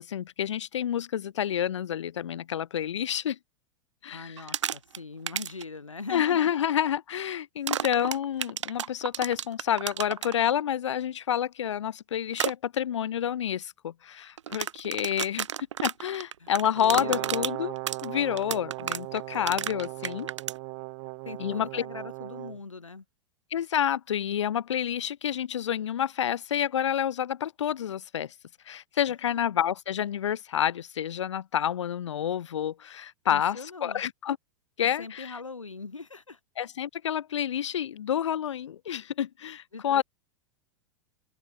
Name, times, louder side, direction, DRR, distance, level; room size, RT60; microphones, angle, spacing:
voice 1, 0.0-3.4 4.0-4.3 6.1-15.5 15.8-17.7 18.0-20.3 21.4-21.8 23.5-28.3 28.7-34.4 34.8-35.3 36.6-40.0, left 9 dB, 65° left, 1.3 m, -29 dB
voice 2, 4.1-6.6 8.0-8.1 16.4-16.5 16.8-17.5 21.2-23.0 33.3-34.0 35.0-36.4 39.7-40.0, left 4 dB, 85° left, 1.2 m, -41 dB
sound 1, 4.4-5.0 5.3-5.6 7.7-10.3 12.3-12.5 14.4-20.6, right 9 dB, 70° right, 1.1 m, -31 dB
Brass instrument, 16.8-22.6, right 39 dB, 45° right, 4.0 m, -38 dB
open air
figure-of-eight pair, 95°, 16 cm